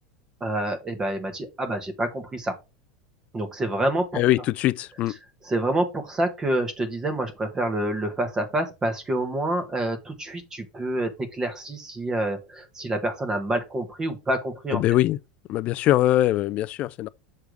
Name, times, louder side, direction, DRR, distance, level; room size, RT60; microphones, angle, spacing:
voice 1, 0.4-2.6 3.3-4.1 5.4-14.8, right 1 dB, 15° right, 1.2 m, -27 dB
voice 2, 4.1-5.1 14.7-15.2 15.5-17.1, left 14 dB, 40° left, 0.3 m, -22 dB
6.5 x 3.5 x 4.7 m
supercardioid pair, 145°, 4 cm